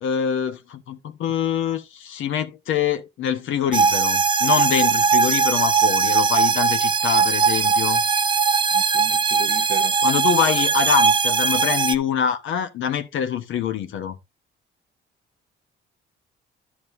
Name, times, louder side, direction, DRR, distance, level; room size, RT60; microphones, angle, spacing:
voice 1, 0.0-8.0 10.0-14.2, left 8 dB, 80° left, 1.0 m, -25 dB
sound 1, 3.7-12.0, right 5 dB, 25° right, 0.6 m, -19 dB
voice 2, 8.7-9.9, right 8 dB, 55° right, 1.1 m, -36 dB
11.0 x 6.4 x 2.6 m
cardioid pair, 90°, 20 cm